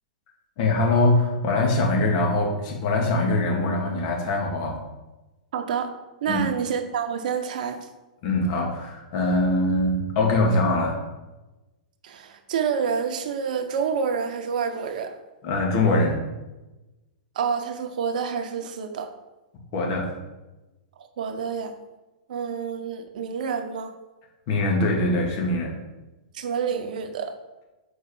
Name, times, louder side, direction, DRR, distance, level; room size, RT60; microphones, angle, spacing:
voice 1, 0.6-4.8 6.3-6.4 8.2-11.0 15.4-16.3 19.7-20.1 24.5-25.8, left 2 dB, 50° left, 0 dB, 1.9 m, -23 dB
voice 2, 5.5-5.9 6.2-7.9 12.0-15.2 17.4-19.1 21.0-21.7 22.3-23.9 26.3-27.3, right 6 dB, 65° right, 6 dB, 0.9 m, -28 dB
5.2 x 4.6 x 6.0 m, 1.1 s
hypercardioid pair, 125°, 5 cm